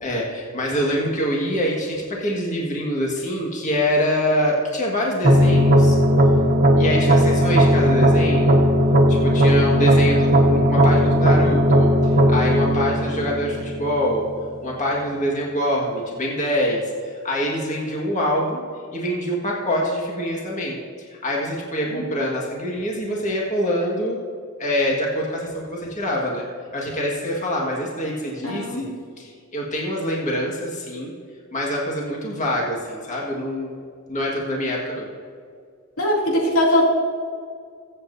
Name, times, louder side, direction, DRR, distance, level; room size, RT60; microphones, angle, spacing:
voice 1, 0.0-6.0 6.8-8.6 9.2-14.3 14.6-18.6 18.9-24.2 24.6-26.5 26.7-28.9 29.2-31.1 31.5-33.8 34.1-35.1, equal, 35° left, -2 dB, 1.7 m, -25 dB
sound 1, 5.2-14.2, equal, 45° right, 1.2 m, -17 dB
voice 2, 28.4-28.8 36.0-36.9, left 1 dB, 80° left, -3 dB, 2.6 m, -20 dB
23.0 x 8.0 x 2.7 m, 2.2 s
head